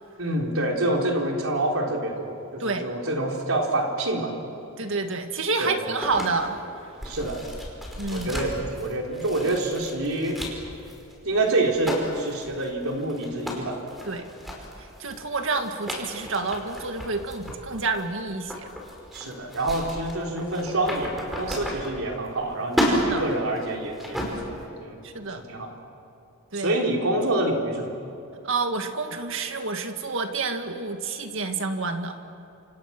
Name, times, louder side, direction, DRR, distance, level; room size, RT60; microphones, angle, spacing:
voice 1, 0.2-4.4 5.6-5.8 7.0-7.4 8.1-10.4 11.2-13.8 14.2-14.3 19.1-25.0 25.5-25.8 26.5-27.9, right 1 dB, 80° right, 0 dB, 4.0 m, -27 dB
voice 2, 4.8-6.6 8.0-8.3 14.1-14.2 15.0-18.7 22.9-23.2 25.0-25.4 26.5-26.7 28.4-32.2, right 3 dB, 65° right, 6 dB, 1.9 m, -29 dB
sound 1, 6.0-22.4 22.7-24.6, equal, ahead, 5.0 m, -33 dB
28.5 x 26.5 x 6.1 m, 2.9 s
head